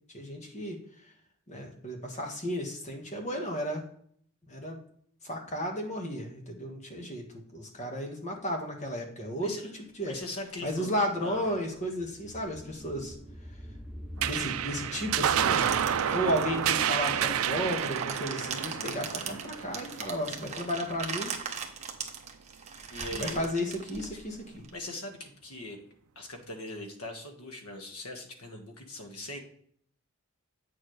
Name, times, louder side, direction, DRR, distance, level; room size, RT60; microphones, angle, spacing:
voice 1, 0.1-0.8 1.5-3.8 4.5-4.8 5.2-7.2 7.5-9.5 10.0-10.2 10.6-13.1 14.2-15.8 16.1-21.3 23.1-24.7, equal, 30° left, 2 dB, 1.6 m, -33 dB
voice 2, 10.0-10.9 11.2-11.4 15.9-16.2 22.9-23.4 24.7-25.8 26.1-29.4, left 1 dB, 85° left, 4 dB, 1.6 m, -41 dB
sound 1, 10.1-19.1, equal, ahead, 0.8 m, -46 dB
sound 2, 14.2-21.0, right 9 dB, 75° right, 0.4 m, -30 dB
sound 3, 15.5-24.7, right 6 dB, 30° right, 1.0 m, -39 dB
8.6 x 6.6 x 3.3 m, 0.63 s
head